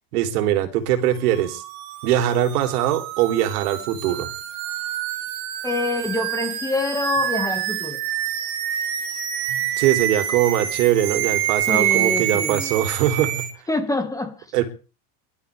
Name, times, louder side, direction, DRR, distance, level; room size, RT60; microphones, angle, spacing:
voice 1, 0.1-1.6 2.0-4.3 9.5-13.4 14.5-14.6, right 11 dB, 75° right, 3.3 m, -21 dB
sound 1, 1.2-13.5, right 11 dB, 60° right, 3.4 m, -27 dB
voice 2, 5.6-8.0 11.7-12.7 13.7-14.3, left 2 dB, 5° left, 1.7 m, -25 dB
24.0 x 12.5 x 3.4 m
supercardioid pair, 145°, 46 cm